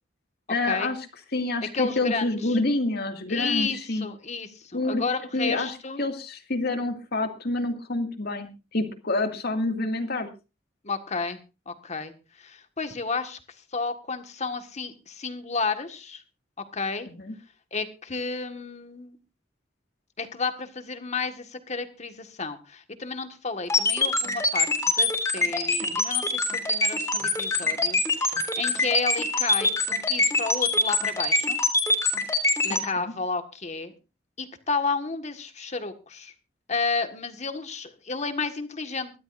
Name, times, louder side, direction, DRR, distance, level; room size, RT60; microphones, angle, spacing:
voice 1, 0.5-1.0 1.3-4.1 4.7-5.0 5.3-10.3 17.2-17.3 25.8-26.0 32.6-33.1, left 2 dB, 60° left, 6 dB, 2.2 m, -28 dB
voice 2, 1.7-2.6 3.3-6.1 10.8-11.4 11.7-12.1 12.4-13.4 13.7-16.2 16.7-17.1 17.7-19.2 20.2-24.7 25.0-31.6 32.6-33.9 34.4-36.3 36.7-39.1, left 4 dB, 40° left, 8 dB, 1.6 m, -31 dB
sound 1, 23.7-32.8, left 3 dB, 15° left, 3.6 m, -23 dB
24.0 x 12.0 x 2.6 m, 0.30 s
head